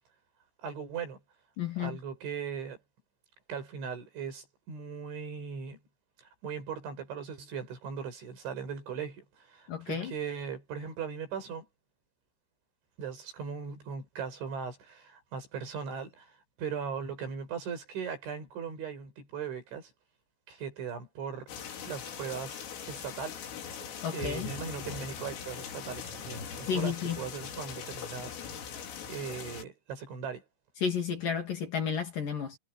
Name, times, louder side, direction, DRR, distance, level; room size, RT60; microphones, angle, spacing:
voice 1, 0.6-1.2 1.8-2.8 3.5-5.8 6.2-11.7 13.0-16.3 16.6-19.9 20.5-21.5 21.8-22.6 22.9-23.5 24.1-28.4 29.1-30.4, right 6 dB, 70° right, 8.5 m, -39 dB
voice 2, 1.6-2.0 9.7-10.1 24.0-24.5 26.7-27.2 30.8-32.6, left 7 dB, 50° left, 3.9 m, -32 dB
sound 1, 21.5-29.6, left 7 dB, 90° left, 6.2 m, -41 dB
omnidirectional pair, 5.7 m